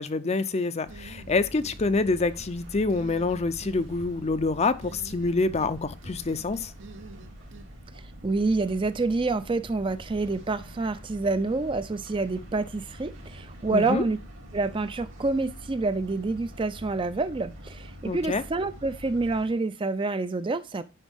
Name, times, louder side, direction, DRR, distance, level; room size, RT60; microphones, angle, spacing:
voice 1, 0.0-6.7 13.7-14.0 18.0-18.4, left 3 dB, 30° left, 0.5 m, -26 dB
sound 1, 0.8-19.5, equal, 85° right, 2.4 m, -45 dB
sound 2, 0.9-1.8 2.1-2.5 2.9-3.8 4.8-5.7 6.0-7.7, right 3 dB, 65° right, 0.8 m, -47 dB
voice 2, 8.2-14.2 14.5-20.8, right 3 dB, 25° right, 0.4 m, -27 dB
9.9 x 5.4 x 3.5 m
head